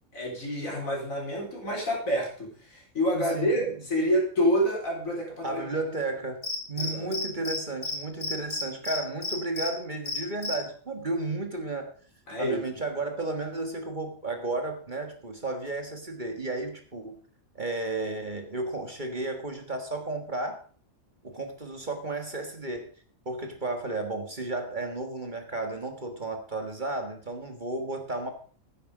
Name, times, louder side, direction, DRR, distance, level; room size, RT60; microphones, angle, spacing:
voice 1, 0.1-5.7 6.8-7.1 12.3-12.6, equal, 70° left, -1 dB, 4.5 m, -28 dB
voice 2, 3.1-3.6 5.4-11.9 12.4-17.2 17.6-20.6 21.2-22.9 23.3-28.3, right 2 dB, 35° right, 5 dB, 1.7 m, -33 dB
Cricket, 6.4-7.6 7.8-8.0 8.2-9.7 10.1-10.5, left 2 dB, 50° left, 2.6 m, -31 dB
12.5 x 9.8 x 5.0 m, 0.43 s
omnidirectional pair, 1.5 m